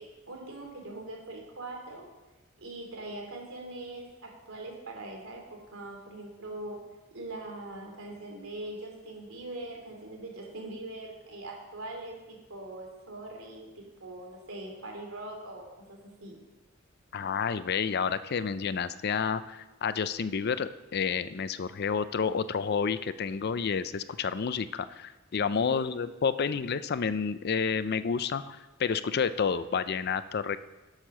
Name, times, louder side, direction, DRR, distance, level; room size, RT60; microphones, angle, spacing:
voice 1, 0.0-2.1 2.6-6.8 7.1-16.3 25.5-26.0, right 2 dB, 90° right, 0 dB, 3.2 m, -42 dB
voice 2, 17.1-30.6, left 6 dB, 50° left, 14 dB, 0.5 m, -30 dB
12.0 x 6.5 x 6.2 m, 1.1 s
head